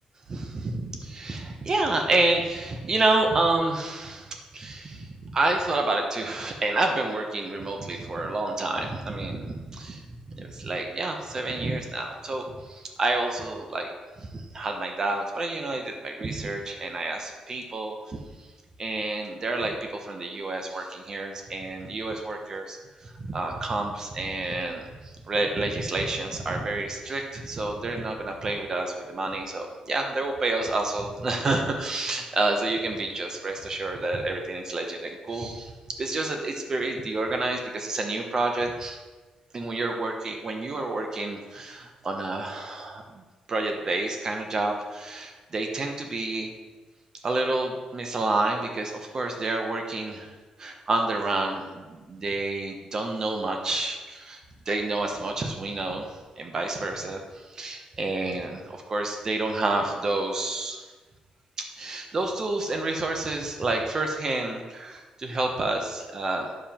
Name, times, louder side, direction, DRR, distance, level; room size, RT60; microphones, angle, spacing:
voice 1, 0.3-13.9 14.2-18.2 18.8-22.8 23.0-24.9 25.3-35.7 36.0-39.0 39.5-43.2 43.5-46.5 47.2-54.4 54.7-56.1 56.4-60.8 61.8-66.5, right 2 dB, 30° right, 3 dB, 1.1 m, -29 dB
10.0 x 7.2 x 4.4 m, 1.3 s
wide cardioid pair, 175°, 2 cm